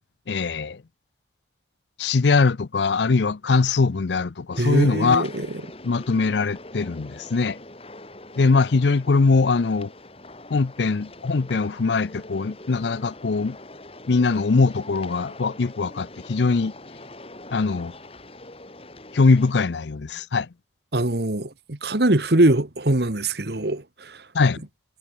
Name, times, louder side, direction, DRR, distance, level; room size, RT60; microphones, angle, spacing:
voice 1, 0.3-0.8 2.0-5.3 5.8-7.6 8.4-9.9 10.5-13.6 14.1-16.7 17.5-17.9 19.1-20.5 24.3-24.6, left 4 dB, 75° left, 0.6 m, -21 dB
sound 1, 4.5-19.5, left 2 dB, 30° left, 4.3 m, -43 dB
voice 2, 4.6-5.5 20.9-24.2, right 1 dB, 65° right, 1.6 m, -22 dB
head